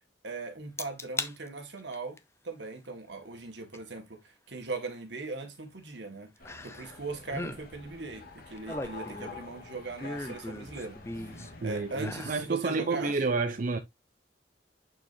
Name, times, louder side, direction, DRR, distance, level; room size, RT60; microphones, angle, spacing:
voice 1, 0.2-2.2 2.4-6.3 6.6-11.0 11.3-13.2, right 3 dB, 75° right, 1.8 m, -39 dB
sound 1, 0.8-1.3 1.8-2.2 3.7-3.8 6.4-7.0 7.3-7.6 8.4-9.5 10.0-11.5 11.9-12.4 12.9-13.0, left 2 dB, 15° left, 0.7 m, -38 dB
sound 2, 6.4-12.4, left 2 dB, 60° left, 2.0 m, -47 dB
voice 2, 11.6-13.8, right 4 dB, 50° right, 0.6 m, -30 dB
8.6 x 4.6 x 2.7 m
head